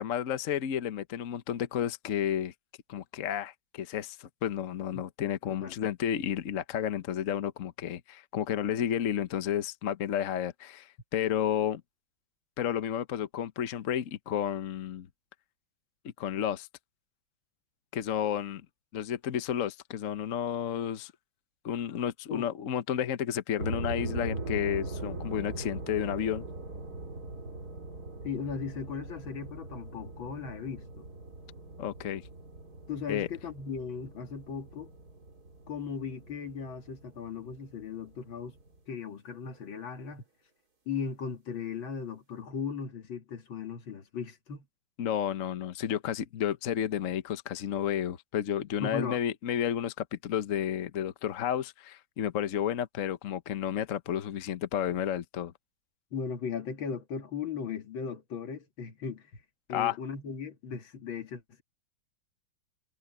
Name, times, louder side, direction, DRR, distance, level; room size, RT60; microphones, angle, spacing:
voice 1, 0.0-2.5 2.9-11.8 12.6-15.1 16.0-16.7 17.9-18.6 18.9-21.1 21.6-26.5 31.8-32.3 33.1-33.3 45.0-55.5 59.7-60.0, left 9 dB, 55° left, 1.0 m, -31 dB
voice 2, 5.2-5.8 22.3-22.5 28.2-31.1 32.9-34.9 35.7-38.6 38.9-40.2 40.9-44.7 48.8-49.2 56.1-59.3 59.7-61.6, left 6 dB, 70° left, 2.6 m, -37 dB
sound 1, 23.6-38.8, right 2 dB, 45° right, 3.7 m, -41 dB
omnidirectional pair, 2.3 m